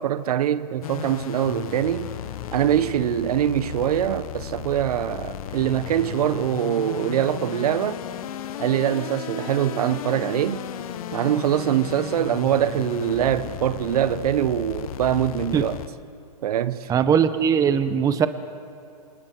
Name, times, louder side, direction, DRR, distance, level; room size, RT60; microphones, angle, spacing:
voice 1, 0.0-2.1 2.5-8.0 8.6-10.7 11.1-15.8 16.4-16.9, right 10 dB, 65° right, 0.9 m, -23 dB
sound 1, 0.8-15.9, left 10 dB, 60° left, 1.2 m, -34 dB
voice 2, 16.9-18.3, right 7 dB, 15° right, 0.9 m, -20 dB
28.0 x 27.5 x 4.5 m
hypercardioid pair, 135°, 21 cm